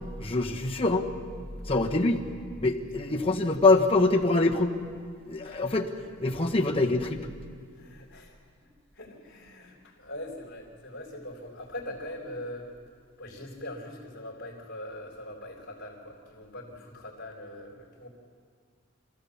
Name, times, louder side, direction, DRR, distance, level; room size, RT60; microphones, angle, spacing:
voice 1, 0.2-1.1 1.7-2.3 2.6-4.8 5.2-5.9 6.2-7.2, left 2 dB, 25° left, 1 dB, 1.5 m, -24 dB
voice 2, 5.4-5.8 6.4-6.5 7.7-8.4 8.6-8.7 8.9-12.7 13.2-18.1, left 1 dB, 50° left, -8 dB, 4.0 m, -42 dB
27.0 x 15.5 x 7.3 m, 2.1 s
head